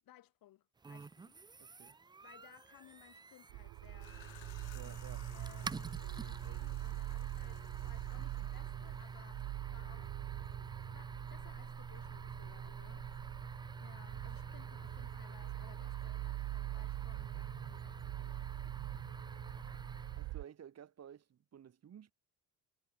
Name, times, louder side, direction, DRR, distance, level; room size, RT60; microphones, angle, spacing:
voice 1, 0.0-1.4 2.2-4.2 4.8-5.0 5.3-10.1 10.9-13.1 13.8-18.7 19.4-19.6, left 14 dB, 65° left, 2.9 m, -62 dB
sound 1, 0.8-20.4, right 4 dB, 10° right, 0.4 m, -48 dB
voice 2, 1.6-2.0 4.7-5.3 16.8-17.0 20.2-22.1, right 9 dB, 45° right, 1.6 m, -54 dB
sound 2, 3.5-20.4, right 21 dB, 75° right, 0.8 m, -44 dB
sound 3, 3.9-9.4, left 22 dB, 85° left, 6.3 m, -61 dB
supercardioid pair, 80°, 36 cm